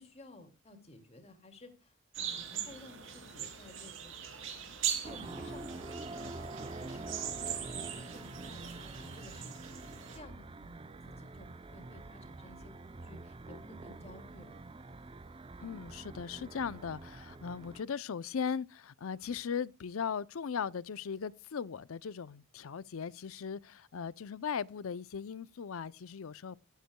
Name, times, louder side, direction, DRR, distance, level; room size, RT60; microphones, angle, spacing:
voice 1, 0.0-4.1 4.6-9.8 10.1-14.6, left 1 dB, 30° left, 2.2 m, -55 dB
sound 1, 2.1-10.2, right 8 dB, 65° right, 2.7 m, -41 dB
sound 2, 5.0-17.9, right 2 dB, 25° right, 0.5 m, -46 dB
voice 2, 15.6-26.6, left 6 dB, 80° left, 0.5 m, -38 dB
20.0 x 8.3 x 2.2 m
head